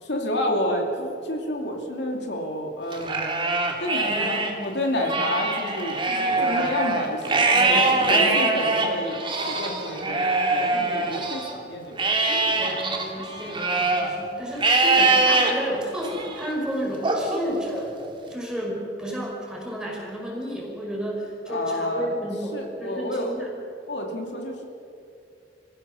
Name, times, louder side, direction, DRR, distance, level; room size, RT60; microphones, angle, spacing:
voice 1, 0.0-3.4 3.8-12.0 21.5-22.2 22.5-23.4 23.9-24.7, left 1 dB, 70° left, 2 dB, 2.6 m, -29 dB
Livestock farm animals working animals, 2.9-4.5 4.9-11.5 12.0-14.1 14.6-15.5 16.0-16.5 17.0-18.1, right 3 dB, 30° right, 2.5 m, -23 dB
voice 2, 4.1-4.6 7.6-8.4 12.6-17.9 18.3-23.5, equal, 5° right, -3 dB, 5.4 m, -32 dB
25.5 x 16.0 x 7.0 m, 2.6 s
head